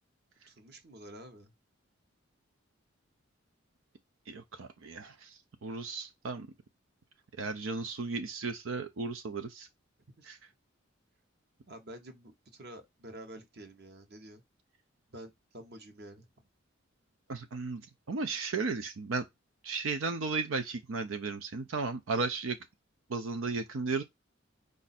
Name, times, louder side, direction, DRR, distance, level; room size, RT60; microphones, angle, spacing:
voice 1, 0.5-1.5 10.2-10.4 11.7-14.4 15.1-16.3, right 1 dB, 55° right, 1.0 m, -49 dB
voice 2, 4.3-6.5 7.4-9.7 10.2-10.4 17.3-17.8 18.1-19.3 19.6-22.6 23.1-24.0, right 4 dB, 90° right, 0.5 m, -35 dB
5.0 x 2.6 x 4.0 m
head